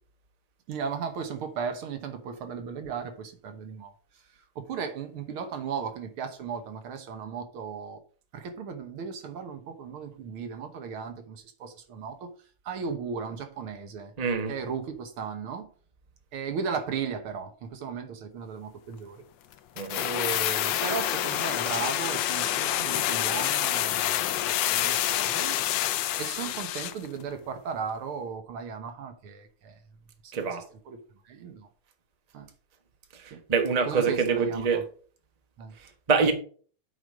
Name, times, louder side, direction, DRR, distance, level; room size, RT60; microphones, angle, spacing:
voice 1, 0.7-3.9 4.6-8.0 8.3-12.3 12.7-14.1 14.5-15.7 16.3-19.3 20.0-25.6 25.9-29.8 30.2-31.7 32.3-32.5 33.3-33.4 33.9-34.9 35.6-35.7 36.2-36.3, right 6 dB, 75° right, 7 dB, 2.0 m, -36 dB
voice 2, 14.2-14.5 19.8-20.1 30.3-30.6 33.1-34.8 36.1-36.3, right 5 dB, 25° right, 5 dB, 1.0 m, -25 dB
sound 1, 19.8-27.1 27.3-27.4, left 12 dB, 75° left, 1.1 m, -27 dB
7.9 x 5.1 x 5.0 m, 0.42 s
omnidirectional pair, 2.4 m